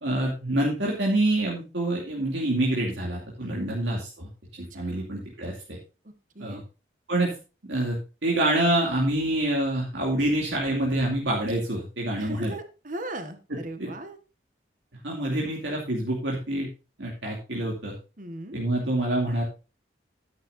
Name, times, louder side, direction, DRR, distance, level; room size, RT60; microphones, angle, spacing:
voice 1, 0.0-4.3 4.7-5.8 6.4-6.6 7.1-7.4 7.6-12.5 13.5-13.9 15.0-16.7 17.0-18.0 18.5-19.4, right 1 dB, 80° right, -2 dB, 2.6 m, -26 dB
voice 2, 3.4-3.7 4.7-5.1 6.3-6.6 12.2-14.2 18.2-18.6, right 1 dB, 45° right, 8 dB, 1.5 m, -38 dB
12.0 x 10.5 x 2.7 m, 0.31 s
head